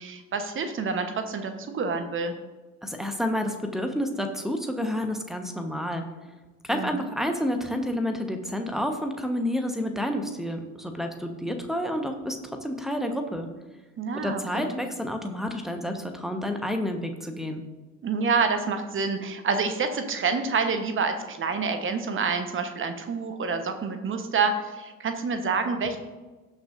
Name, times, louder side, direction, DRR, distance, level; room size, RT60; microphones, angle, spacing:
voice 1, 0.0-2.3 6.7-7.0 14.0-14.7 18.0-26.0, right 4 dB, 30° right, 8 dB, 1.1 m, -28 dB
voice 2, 2.8-6.0 6.6-13.5 14.2-17.6, equal, ahead, 5 dB, 1.2 m, -29 dB
17.0 x 6.1 x 2.6 m, 1.2 s
figure-of-eight pair, 60°, 41 cm